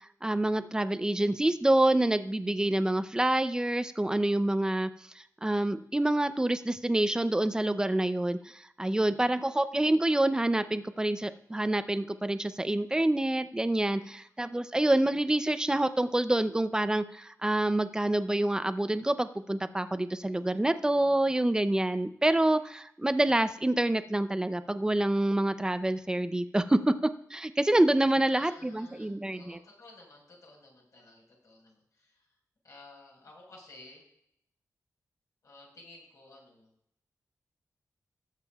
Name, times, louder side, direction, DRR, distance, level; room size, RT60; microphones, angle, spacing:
voice 1, 0.2-4.9 5.4-8.4 8.8-29.6, right 1 dB, 10° right, 11 dB, 0.5 m, -27 dB
voice 2, 8.9-9.3 13.8-14.2 28.1-32.3 32.6-34.0 35.4-36.7, left 2 dB, 70° left, -2 dB, 4.8 m, -54 dB
19.5 x 7.5 x 2.4 m, 0.72 s
wide cardioid pair, 125°, 6 cm